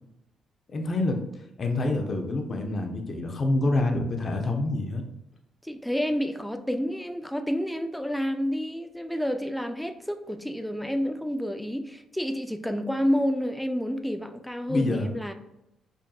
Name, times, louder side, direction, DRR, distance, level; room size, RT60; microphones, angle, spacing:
voice 1, 0.7-1.2 1.6-5.0 14.7-15.1, left 2 dB, 40° left, 4 dB, 0.6 m, -26 dB
voice 2, 5.6-15.3, equal, 5° left, 8 dB, 0.4 m, -29 dB
5.1 x 2.6 x 2.3 m, 0.88 s
cardioid pair, 90°, 0 cm